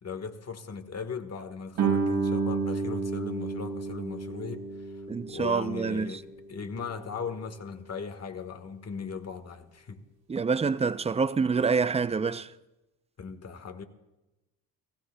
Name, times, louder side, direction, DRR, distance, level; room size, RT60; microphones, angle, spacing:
voice 1, 0.0-4.9 5.3-10.0 13.2-13.8, left 5 dB, 40° left, 1.4 m, -38 dB
Guitar, 1.8-7.1, right 4 dB, 70° right, 3.8 m, -31 dB
voice 2, 5.1-6.2 10.3-12.5, right 5 dB, 15° right, 0.4 m, -27 dB
30.0 x 15.5 x 2.2 m
supercardioid pair, 85°, 40 cm